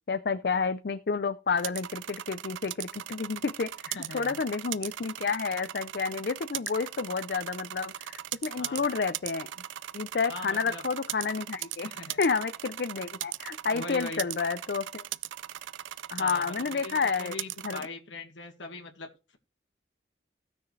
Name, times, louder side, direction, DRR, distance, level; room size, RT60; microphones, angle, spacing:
voice 1, 0.1-9.5 9.9-11.9 12.2-15.0 16.1-17.3 17.6-17.8, left 5 dB, 60° left, 0.5 m, -30 dB
sound 1, 1.6-17.9, right 13 dB, 90° right, 0.4 m, -39 dB
voice 2, 3.9-4.4 8.6-8.8 10.3-10.8 11.8-12.2 13.7-14.3 16.2-19.4, left 3 dB, 85° left, 1.7 m, -41 dB
16.0 x 6.3 x 3.2 m
head